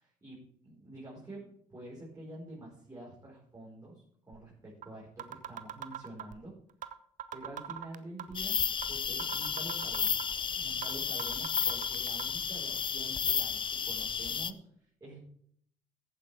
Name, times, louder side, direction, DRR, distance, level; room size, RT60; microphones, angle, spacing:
voice 1, 0.0-6.5 7.3-10.1 10.5-14.6 15.0-15.2, right 1 dB, 25° right, -6 dB, 4.6 m, -47 dB
sound 1, 4.3-4.4 4.8-4.9 5.2-6.4 6.8-6.9 7.2-8.4 8.8-8.9 9.2-10.4 10.8-10.9 11.2-12.2, right 10 dB, 55° right, 0.8 m, -40 dB
sound 2, 8.3-14.5, left 6 dB, 30° left, 0.5 m, -32 dB
15.0 x 9.1 x 3.4 m, 0.66 s
hypercardioid pair, 55°, 16 cm